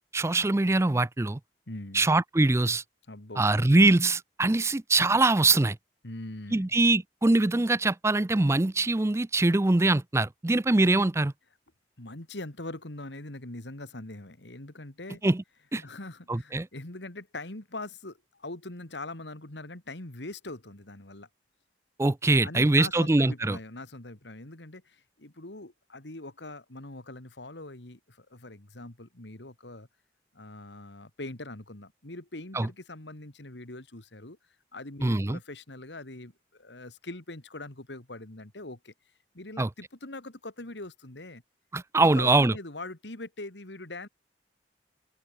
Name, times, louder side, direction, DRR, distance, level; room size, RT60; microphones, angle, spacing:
voice 1, 0.1-1.4 1.9-2.8 3.4-5.8 6.5-11.3 15.2-15.4 15.7-15.8 16.3-16.7 22.0-23.6 32.5-32.7 35.0-35.4 39.6-39.7 41.7-42.5, right 2 dB, 15° right, 0.4 m, -23 dB
voice 2, 1.7-2.1 3.1-3.4 6.0-6.7 12.0-15.2 15.8-21.3 22.4-29.9 30.3-34.4 34.7-38.9 39.3-41.4 42.0-44.1, left 2 dB, 75° left, 2.6 m, -42 dB
open air
head